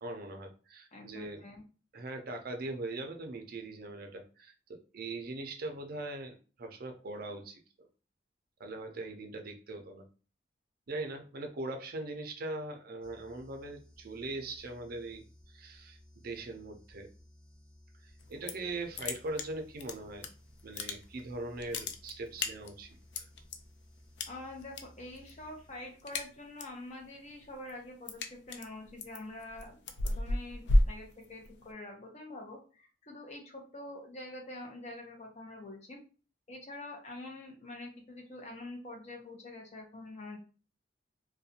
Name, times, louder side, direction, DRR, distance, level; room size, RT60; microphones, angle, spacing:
voice 1, 0.0-1.4 1.9-7.9 8.6-10.1 10.9-17.1 18.0-20.3 20.6-23.2, right 2 dB, 55° right, 5 dB, 0.5 m, -41 dB
voice 2, 0.9-1.6 24.3-36.0 36.5-40.4, left 2 dB, 40° left, 1 dB, 0.7 m, -46 dB
sound 1, 13.0-26.1, left 1 dB, 5° left, 1.2 m, -59 dB
sound 2, 18.2-18.7 18.9-20.3 20.6-21.3 21.6-23.6 24.2-24.8 25.1-25.4 25.7-26.8 27.2-31.7, left 1 dB, 70° left, 0.4 m, -32 dB
2.4 x 2.2 x 2.7 m, 0.36 s
head